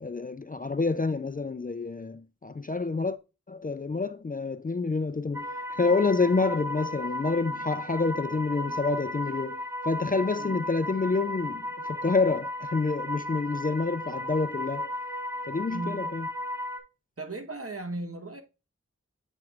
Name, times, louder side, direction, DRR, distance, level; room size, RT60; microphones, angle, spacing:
voice 1, 0.0-3.2 3.5-14.9 15.5-16.3, left 3 dB, 30° left, 0.3 m, -28 dB
sound 1, 5.3-16.8, left 1 dB, 10° right, 0.9 m, -35 dB
voice 2, 15.7-16.2 17.2-18.4, right 2 dB, 50° right, 1.1 m, -37 dB
8.9 x 4.4 x 2.4 m
wide cardioid pair, 45°, 30 cm